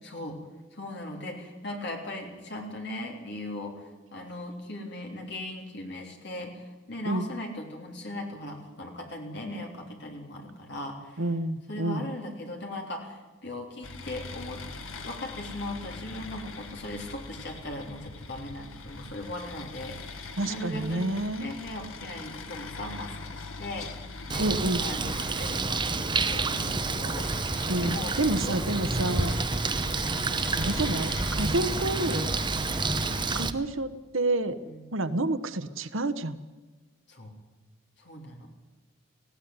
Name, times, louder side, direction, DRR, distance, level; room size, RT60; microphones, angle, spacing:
voice 1, 0.0-0.4 0.7-11.3 11.7-14.6 15.0-24.5 24.8-28.1 28.4-28.6 29.6-29.9 34.6-34.8 37.1-37.3 38.0-38.5, left 1 dB, 55° left, 2 dB, 3.7 m, -39 dB
voice 2, 11.2-12.1 20.4-21.6 24.4-24.8 27.7-29.3 30.6-32.3 33.3-34.6 34.9-36.4, right 2 dB, 75° right, 11 dB, 1.1 m, -29 dB
sound 1, 13.8-33.4, left 3 dB, 80° left, 1.7 m, -41 dB
Bird, 24.3-33.5, right 3 dB, 20° right, 0.8 m, -29 dB
18.5 x 16.0 x 9.6 m, 1.2 s
head